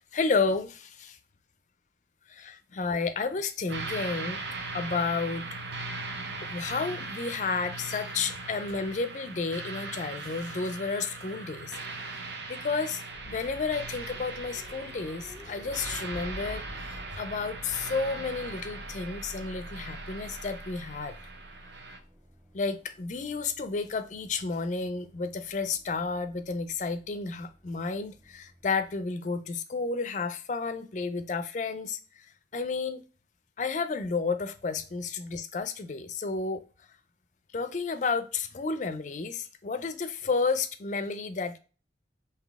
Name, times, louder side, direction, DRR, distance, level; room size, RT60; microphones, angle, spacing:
voice 1, 0.0-1.2 2.3-4.4 4.7-5.4 6.4-12.2 12.5-21.1 22.5-32.0 32.5-33.0 33.6-36.6 37.5-41.6, left 4 dB, 40° left, 0.4 m, -31 dB
sound 1, 3.7-22.0, right 3 dB, 70° right, 0.7 m, -39 dB
sound 2, 13.1-29.0, equal, 10° right, 0.5 m, -48 dB
3.9 x 2.8 x 3.5 m
head